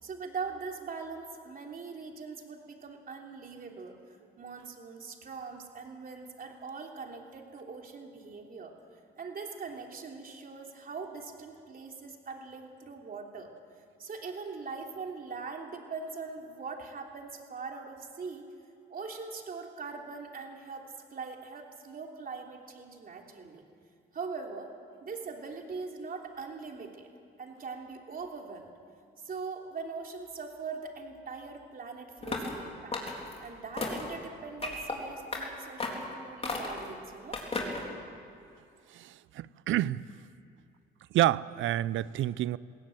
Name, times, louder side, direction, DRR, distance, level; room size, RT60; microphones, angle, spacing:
voice 1, 0.0-8.7 9.2-13.5 14.0-18.4 18.9-23.6 24.1-24.7 25.0-27.1 27.4-28.7 29.2-33.0 33.4-37.4, right 4 dB, 45° right, 2 dB, 3.3 m, -41 dB
sound 1, 32.2-32.6 32.9-33.4 33.8-34.1 34.6-35.0 35.3-35.5 35.8-36.1 36.4-36.9 37.3-37.9, left 3 dB, 30° left, 4.0 m, -34 dB
voice 2, 38.9-40.0 41.1-42.6, right 13 dB, 75° right, 19 dB, 0.6 m, -28 dB
21.0 x 16.5 x 9.1 m, 2.4 s
cardioid pair, 90°, 20 cm